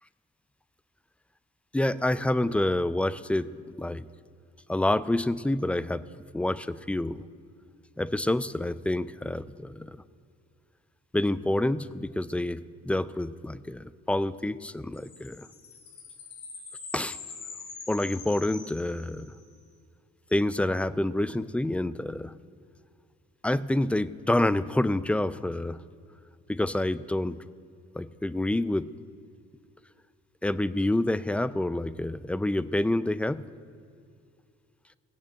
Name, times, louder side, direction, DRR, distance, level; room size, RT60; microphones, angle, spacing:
voice 1, 1.7-4.1 4.7-6.1 6.3-7.2 8.0-10.0 11.1-15.5 16.9-17.2 17.9-19.3 20.3-22.4 23.4-25.8 26.5-27.4 27.9-28.9 30.4-33.4, left 1 dB, 5° left, 15 dB, 0.4 m, -28 dB
sound 1, 14.9-19.5, left 4 dB, 70° left, 3.5 m, -44 dB
17.5 x 6.8 x 8.9 m, 2.3 s
cardioid pair, 90°, 30 cm